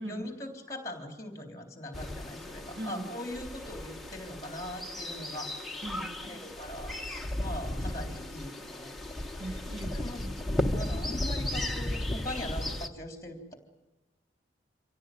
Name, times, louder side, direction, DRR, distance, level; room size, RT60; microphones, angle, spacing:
voice 1, 0.0-5.6 6.3-9.0 9.4-9.6 9.9-13.5, left 1 dB, 15° left, 4 dB, 3.7 m, -41 dB
sound 1, 1.9-12.9, left 1 dB, ahead, 1.1 m, -35 dB
voice 2, 2.8-3.1 5.8-6.5 9.4-10.4, right 1 dB, 70° right, 6 dB, 2.1 m, -40 dB
26.0 x 17.5 x 9.3 m, 1.1 s
head